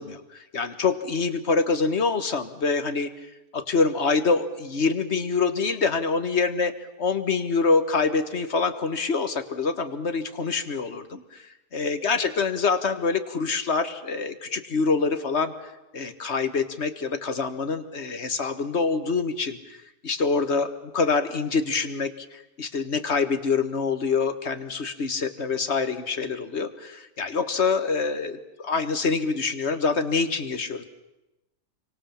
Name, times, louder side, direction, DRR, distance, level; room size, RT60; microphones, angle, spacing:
voice 1, 0.0-3.1 3.5-6.7 7.0-11.2 11.7-15.5 15.9-19.8 20.0-30.8, left 4 dB, 40° left, 10 dB, 1.8 m, -25 dB
28.0 x 24.5 x 7.3 m, 0.95 s
omnidirectional pair, 1.8 m